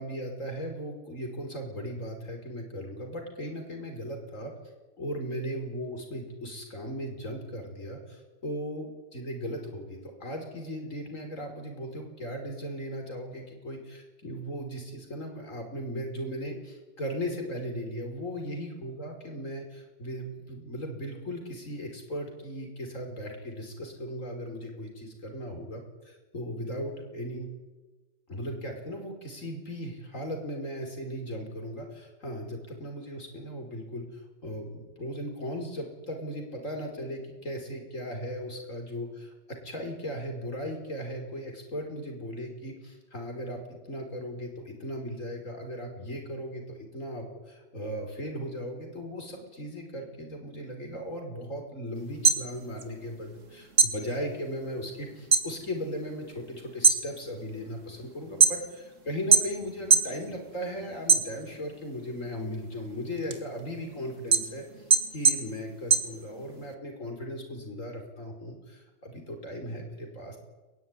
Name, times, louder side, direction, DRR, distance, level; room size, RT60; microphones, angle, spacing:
voice 1, 0.0-4.5 5.0-27.5 28.3-43.6 43.9-64.9 65.1-70.4, equal, 90° left, 3 dB, 5.7 m, -37 dB
sound 1, 52.0-53.4 53.7-55.5 55.9-56.3 56.7-58.9 59.3-60.2 60.5-61.7 62.2-66.7, right 5 dB, 75° right, 2.4 m, -23 dB
22.5 x 21.5 x 9.9 m, 1.2 s
omnidirectional pair, 1.3 m